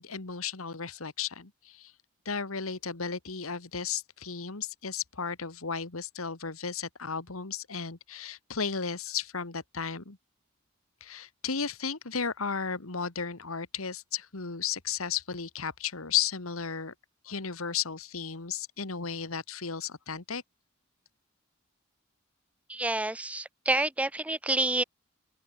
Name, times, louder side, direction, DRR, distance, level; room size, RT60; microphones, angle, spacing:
voice 1, 0.0-1.9 2.3-10.2 11.0-16.9 17.2-20.4, left 6 dB, 90° left, 1.8 m, -34 dB
voice 2, 22.7-24.8, right 2 dB, 5° right, 0.5 m, -28 dB
open air
head